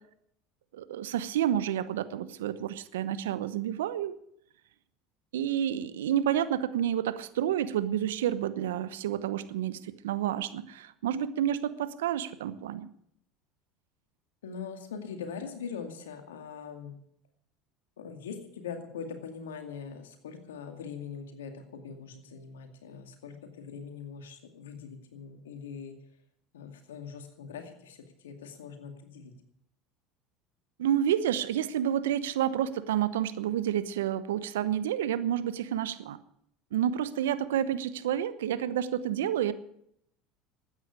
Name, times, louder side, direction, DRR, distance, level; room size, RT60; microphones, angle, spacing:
voice 1, 0.7-4.1 5.3-12.9 30.8-36.2 36.7-39.5, right 10 dB, 85° right, 14 dB, 1.0 m, -29 dB
voice 2, 14.4-16.9 18.0-26.0 26.5-29.3, left 6 dB, 85° left, 6 dB, 2.3 m, -42 dB
13.5 x 9.4 x 9.6 m, 0.71 s
hypercardioid pair, 80°, 0 cm